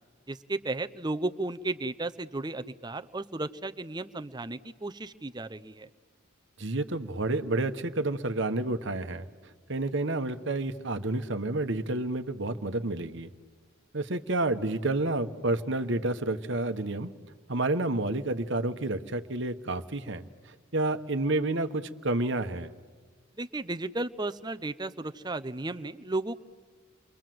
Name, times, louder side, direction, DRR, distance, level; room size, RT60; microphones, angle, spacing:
voice 1, 0.3-5.9 23.4-26.4, right 2 dB, 20° right, 10 dB, 0.7 m, -34 dB
voice 2, 6.6-13.3 13.9-17.1 17.5-22.7, right 2 dB, 60° right, 9 dB, 1.2 m, -30 dB
29.5 x 23.5 x 7.8 m, 1.5 s
head